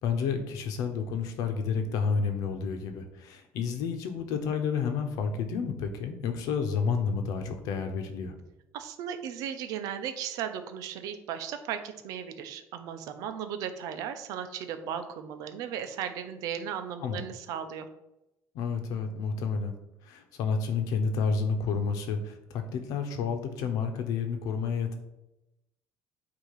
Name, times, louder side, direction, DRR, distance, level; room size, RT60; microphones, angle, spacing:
voice 1, 0.0-8.4 17.0-17.2 18.5-19.7 20.0-24.9, left 5 dB, 75° left, 6 dB, 1.1 m, -30 dB
voice 2, 8.7-17.9, right 8 dB, 75° right, 8 dB, 0.8 m, -36 dB
8.6 x 2.9 x 5.7 m, 0.90 s
cardioid pair, 145°, 6 cm